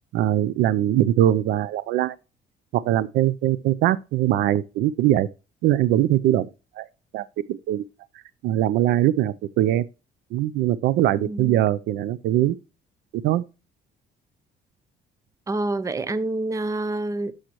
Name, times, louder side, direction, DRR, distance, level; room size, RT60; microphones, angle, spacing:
voice 1, 0.1-2.1 2.7-5.3 5.6-6.5 6.8-6.9 7.1-7.2 7.5-7.8 8.4-9.9 10.3-12.6 13.2-13.4, right 13 dB, 80° right, 0.5 m, -21 dB
voice 2, 11.1-11.6 15.5-17.3, right 2 dB, 20° right, 0.6 m, -27 dB
11.5 x 6.4 x 3.0 m
cardioid pair, 110°, 17 cm